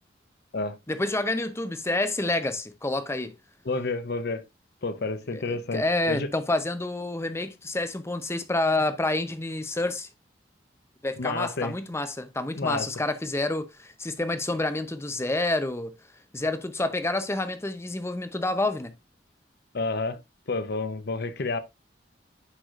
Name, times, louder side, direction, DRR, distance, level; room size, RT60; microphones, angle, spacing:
voice 1, 0.9-3.4 5.3-10.1 11.0-15.9 16.3-18.9, left 2 dB, 15° left, 0.6 m, -28 dB
voice 2, 3.7-4.4 4.8-6.3 11.2-11.7 12.5-12.9 19.7-20.2 20.5-21.6, left 3 dB, 60° left, 0.8 m, -30 dB
10.0 x 4.8 x 2.4 m
head